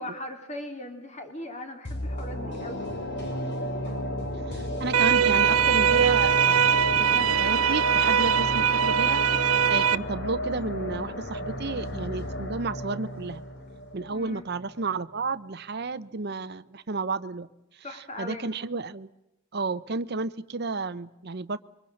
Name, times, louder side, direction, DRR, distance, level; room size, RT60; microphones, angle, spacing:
voice 1, 0.0-3.0 14.1-14.5 17.8-18.5, left 1 dB, 35° left, 5 dB, 3.7 m, -39 dB
sound 1, 1.8-14.9 15.3-15.4, equal, 55° left, 4.1 m, -33 dB
voice 2, 4.5-6.5 6.9-13.4 13.9-17.5 18.2-19.1 19.5-21.6, right 3 dB, 50° right, 11 dB, 0.8 m, -32 dB
sound 2, 4.9-10.0, right 8 dB, 85° right, 0.8 m, -22 dB
26.5 x 24.0 x 6.5 m, 0.88 s
head